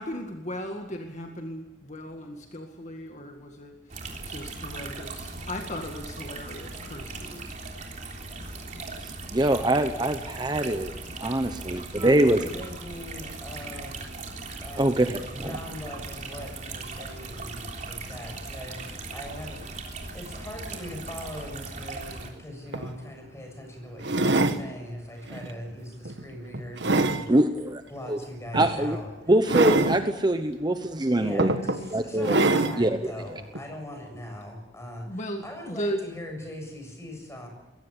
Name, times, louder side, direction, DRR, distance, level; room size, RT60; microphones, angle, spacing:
voice 1, 0.0-4.0 4.2-7.5 8.7-8.9 35.1-36.0, equal, 40° left, 4 dB, 1.9 m, -36 dB
sound 1, 3.9-22.3, right 3 dB, 45° right, 3.6 m, -39 dB
voice 2, 9.0-10.9 11.2-12.4 14.8-15.6 27.3-27.8 28.1-28.2 28.5-29.0 29.3-31.5 31.9-32.4 32.8-33.0, right 1 dB, 25° right, 8 dB, 1.0 m, -23 dB
voice 3, 12.0-14.0 14.6-18.8 19.1-27.3 27.9-29.1 31.2-35.1 35.4-37.5, left 1 dB, 15° left, 3 dB, 7.4 m, -40 dB
sound 2, 22.4-22.5 22.7-22.9 24.0-24.6 25.3-25.5 26.0-27.2 28.5-28.7 29.5-30.0 30.8-30.9 31.4-31.8 32.2-32.8 33.5-33.6, right 2 dB, 80° right, 1.6 m, -24 dB
22.0 x 17.5 x 8.4 m, 0.99 s
head